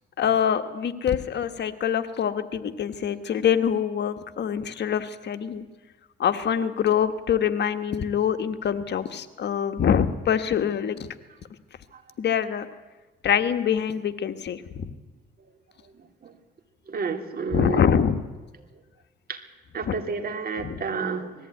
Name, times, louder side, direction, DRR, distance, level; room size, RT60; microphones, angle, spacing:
voice 1, 0.2-5.6 6.2-11.1 12.2-12.7 13.2-14.9 17.5-18.2 19.9-20.0 20.6-20.8, left 8 dB, 60° left, 10 dB, 1.3 m, -25 dB
voice 2, 16.9-17.9 19.3-19.4 19.7-21.5, right 4 dB, 50° right, 5 dB, 2.6 m, -30 dB
19.5 x 14.5 x 9.4 m, 1.2 s
cardioid pair, 90°, 20 cm